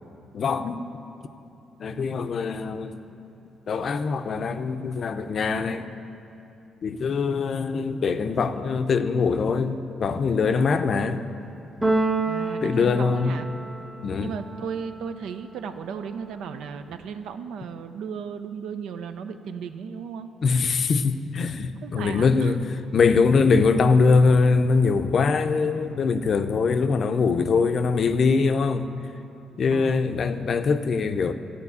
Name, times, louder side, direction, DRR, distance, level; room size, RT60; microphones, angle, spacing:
voice 1, 0.3-0.8 1.8-3.0 3.7-5.9 6.8-11.2 12.6-13.4 14.0-14.4 20.4-28.9 29.6-31.3, left 4 dB, 55° left, 9 dB, 0.5 m, -22 dB
Keyboard (musical), 11.8-13.9, right 2 dB, 10° right, 0.6 m, -26 dB
voice 2, 12.2-13.4 14.2-20.3 21.8-22.5 29.7-30.1, right 6 dB, 80° right, 9 dB, 0.5 m, -35 dB
13.0 x 4.4 x 8.4 m, 2.9 s
cardioid pair, 90°, 0 cm